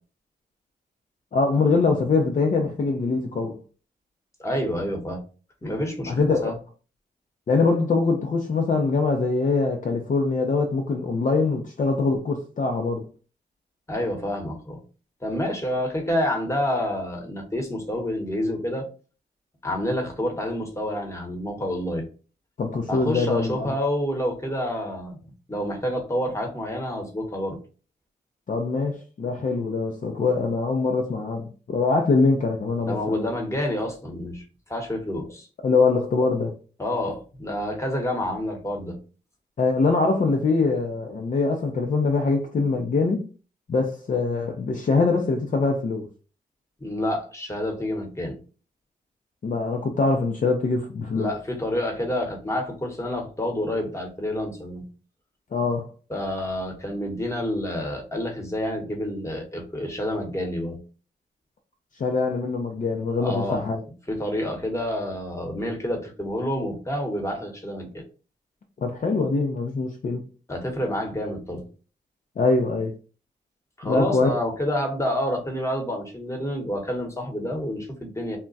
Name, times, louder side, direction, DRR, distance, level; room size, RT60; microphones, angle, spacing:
voice 1, 1.3-3.6 6.1-6.5 7.5-13.1 22.6-23.7 28.5-33.3 35.6-36.5 39.6-43.2 43.7-46.1 49.4-51.3 55.5-55.9 62.0-63.8 68.8-70.2 72.4-72.9 73.8-74.3, left 3 dB, 45° left, 0.5 m, -23 dB
voice 2, 4.4-5.2 5.6-6.6 13.9-14.8 15.2-18.8 19.6-22.0 22.9-25.2 25.5-27.6 32.8-34.4 34.7-35.5 36.8-39.0 46.8-48.4 51.1-54.8 56.1-60.8 63.2-63.6 64.1-68.0 70.5-71.6 73.8-78.4, left 1 dB, 15° left, 1.1 m, -28 dB
2.3 x 2.1 x 3.9 m
cardioid pair, 65°, 18 cm